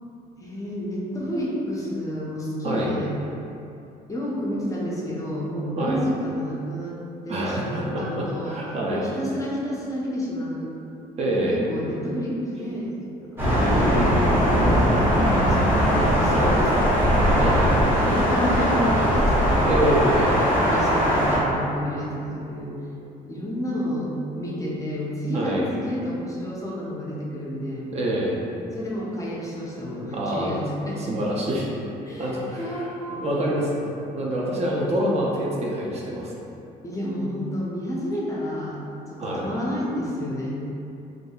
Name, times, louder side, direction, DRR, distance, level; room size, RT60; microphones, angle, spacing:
voice 1, 0.4-3.1 4.1-7.0 7.2-8.6 8.9-10.7 11.4-12.9 13.2-14.4 14.9-17.4 17.7-19.8 20.3-22.7 23.2-27.9 28.7-31.0 32.0-33.4 36.8-40.6, equal, 20° left, -5 dB, 0.4 m, -30 dB
voice 2, 7.3-9.0 11.2-11.6 16.3-16.6 17.4-17.7 19.7-20.4 25.3-25.7 27.9-28.4 30.1-30.5 31.1-31.7 32.2-32.7 33.1-33.7 34.1-36.3 39.2-39.5, right 1 dB, 40° right, -3 dB, 0.4 m, -26 dB
Thunder, 13.4-21.4, equal, 10° right, 0.7 m, -20 dB
2.6 x 2.4 x 2.2 m, 2.7 s
cardioid pair, 110°, 17 cm